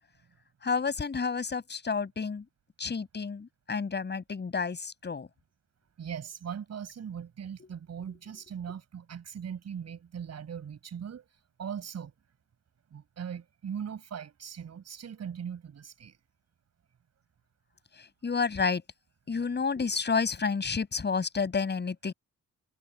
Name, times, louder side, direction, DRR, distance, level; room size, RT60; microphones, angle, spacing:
voice 1, 0.6-2.4 2.8-5.3 7.6-7.7 18.0-18.8 19.3-22.1, left 5 dB, 35° left, 6.5 m, -30 dB
voice 2, 6.0-11.3 11.6-12.1 12.9-16.2, right 8 dB, 55° right, 6.8 m, -40 dB
cardioid pair, 125°, 31 cm